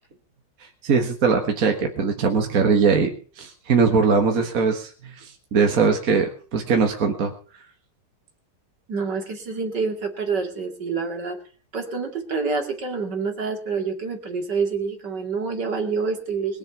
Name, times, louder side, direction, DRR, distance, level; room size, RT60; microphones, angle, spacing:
voice 1, 0.8-7.3, right 5 dB, 55° right, 4 dB, 1.9 m, -21 dB
voice 2, 8.9-11.4 11.7-16.6, right 4 dB, 70° right, 4 dB, 3.1 m, -27 dB
21.5 x 7.3 x 7.2 m, 0.42 s
omnidirectional pair, 1.9 m